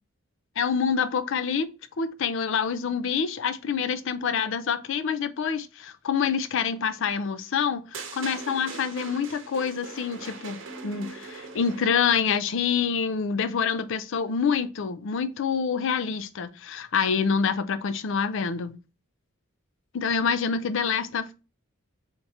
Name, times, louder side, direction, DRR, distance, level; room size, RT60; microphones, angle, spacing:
voice 1, 0.6-1.7 2.0-10.6 10.8-18.8 19.9-21.3, left 6 dB, 65° left, 0.4 m, -26 dB
sound 1, 7.9-12.2, right 3 dB, 65° right, 0.8 m, -40 dB
3.6 x 2.8 x 4.1 m
head